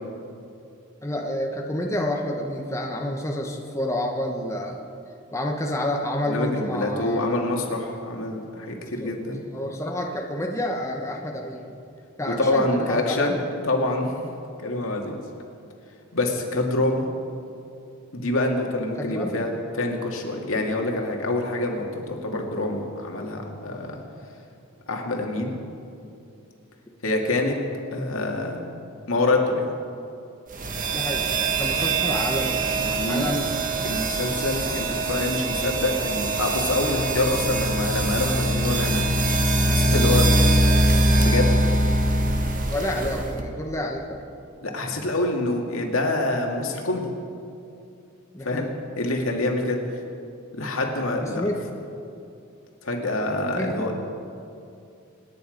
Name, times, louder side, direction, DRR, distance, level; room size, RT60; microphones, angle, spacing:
voice 1, 1.0-4.8 5.3-7.3 8.8-9.1 9.5-11.6 12.2-13.4 19.0-19.4 30.9-31.3 31.6-32.6 33.1-33.5 42.7-44.3 48.3-48.7 51.3-51.6 53.5-53.8, left 1 dB, 15° left, 0 dB, 1.2 m, -29 dB
voice 2, 6.2-9.4 12.3-13.4 13.6-14.3 14.6-15.2 16.1-17.1 18.1-19.5 19.8-24.0 24.9-25.5 27.0-27.6 27.9-28.6 29.1-29.7 32.8-33.3 33.8-39.1 39.7-40.2 41.2-41.5 44.6-47.1 48.4-48.7 49.0-49.8 50.6-51.4 52.8-53.9, left 2 dB, 70° left, 1 dB, 2.4 m, -26 dB
sound 1, 30.6-43.4, right 1 dB, 40° right, 1.6 m, -23 dB
26.5 x 10.0 x 5.3 m, 2.6 s
head